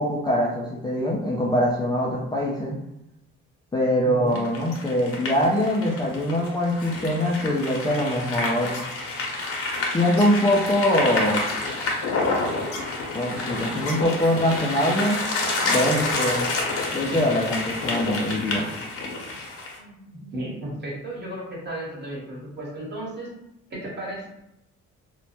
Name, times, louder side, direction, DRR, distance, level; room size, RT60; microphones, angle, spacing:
voice 1, 0.0-2.8 3.7-8.8 9.9-11.4 13.1-15.2 15.6-16.5 16.9-18.7, left 1 dB, 15° left, -4 dB, 0.3 m, -23 dB
voice 2, 4.0-4.4 19.8-23.3 23.7-24.3, right 1 dB, 35° right, -4 dB, 1.1 m, -34 dB
sound 1, 4.3-19.8, left 2 dB, 50° left, 0.7 m, -29 dB
2.1 x 2.1 x 2.8 m, 0.84 s
cardioid pair, 90°, 30 cm